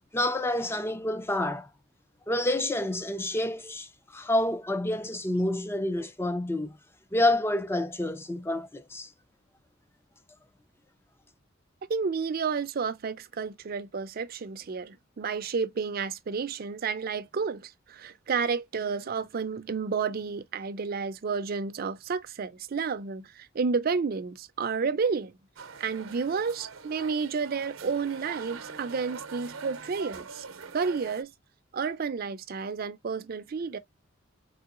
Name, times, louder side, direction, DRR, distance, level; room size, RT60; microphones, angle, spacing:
voice 1, 0.1-1.7 2.3-6.8 7.1-9.1, left 1 dB, 10° left, 0.4 m, -28 dB
voice 2, 11.9-25.3 25.8-30.4 30.7-31.3 31.7-33.8, right 5 dB, 50° right, 0.4 m, -31 dB
sound 1, 25.6-31.2, right 5 dB, 85° right, 0.7 m, -43 dB
3.8 x 3.3 x 2.4 m
head